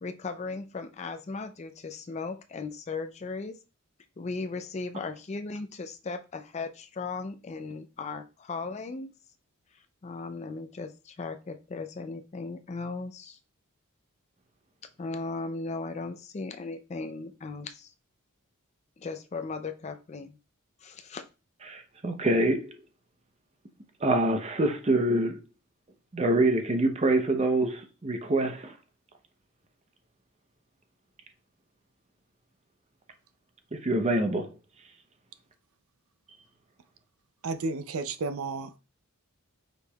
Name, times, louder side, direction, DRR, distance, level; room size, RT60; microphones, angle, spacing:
voice 1, 0.0-3.6 4.2-9.1 10.0-13.4 15.0-17.9 19.0-20.4 20.8-21.2, left 3 dB, 30° left, 0.4 m, -37 dB
voice 2, 21.7-22.7 24.0-25.4 26.1-28.7 33.7-34.5, right 2 dB, 30° right, 0.7 m, -25 dB
voice 3, 37.4-38.8, right 3 dB, 70° right, 0.5 m, -32 dB
5.2 x 4.4 x 2.3 m
head